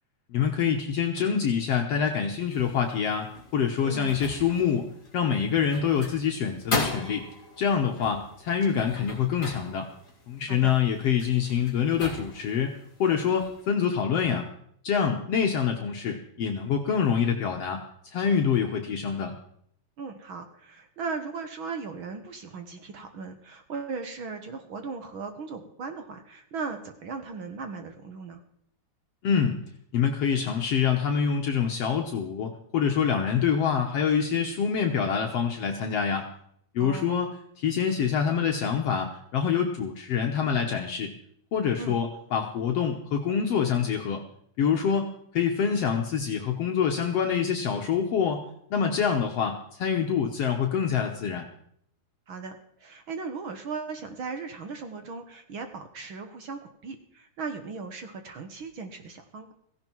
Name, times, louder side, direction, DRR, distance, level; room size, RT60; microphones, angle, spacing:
voice 1, 0.3-7.3 7.6-9.9 10.3-14.5 14.8-19.3 29.2-29.6 29.9-36.3 36.7-37.3 37.6-41.1 41.5-44.2 44.6-48.4 48.7-51.5, left 7 dB, 60° left, 2 dB, 2.0 m, -26 dB
sound 1, 2.5-13.7, left 3 dB, 25° left, 3.7 m, -39 dB
voice 2, 10.5-10.8 20.0-28.4 36.8-37.2 41.8-41.9 49.0-49.2 52.3-59.5, right 4 dB, 55° right, 7 dB, 1.6 m, -37 dB
16.5 x 16.0 x 4.6 m, 0.69 s
omnidirectional pair, 3.5 m